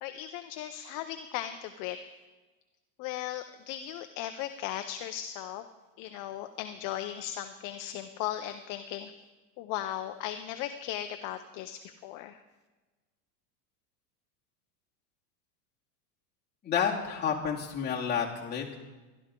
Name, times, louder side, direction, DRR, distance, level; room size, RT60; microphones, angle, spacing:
voice 1, 0.0-2.0 3.0-5.6 6.0-9.1 9.6-12.4, left 12 dB, 45° left, 8 dB, 0.7 m, -37 dB
voice 2, 16.6-18.8, left 7 dB, 20° left, -3 dB, 2.4 m, -30 dB
17.0 x 12.0 x 3.7 m, 1.2 s
supercardioid pair, 135°, 47 cm